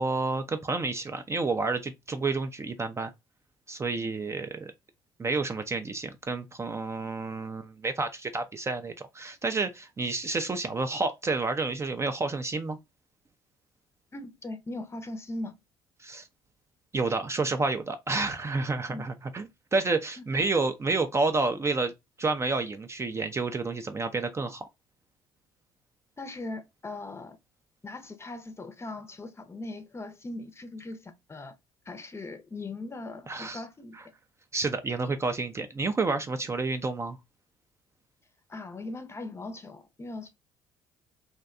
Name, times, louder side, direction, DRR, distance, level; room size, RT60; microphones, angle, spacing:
voice 1, 0.0-3.1 3.7-4.7 5.2-12.8 16.0-16.3 16.9-21.9 22.2-24.6 33.3-33.6 34.5-37.2, right 3 dB, 25° right, 0.4 m, -29 dB
voice 2, 14.1-15.6 18.9-19.0 20.2-20.4 26.2-27.4 27.8-31.5 31.9-34.0 38.5-40.3, left 2 dB, 25° left, 0.6 m, -39 dB
2.6 x 2.2 x 2.4 m
hypercardioid pair, 55°, 11 cm